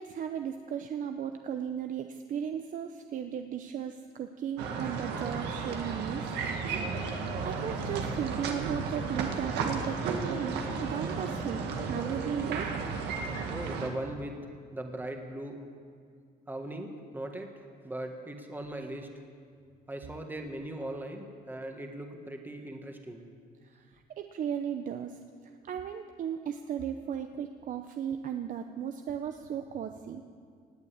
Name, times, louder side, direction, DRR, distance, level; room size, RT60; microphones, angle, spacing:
voice 1, 0.0-6.3 7.4-12.7 24.1-25.2 25.7-30.2, right 8 dB, 50° right, 7 dB, 0.7 m, -36 dB
sound 1, 4.6-13.9, right 4 dB, 85° right, 1.7 m, -33 dB
voice 2, 13.5-14.4 14.7-15.6 16.5-19.1 19.9-23.3, right 1 dB, 10° right, 3 dB, 1.7 m, -39 dB
18.0 x 8.3 x 8.7 m, 2.1 s
cardioid pair, 110°, 17 cm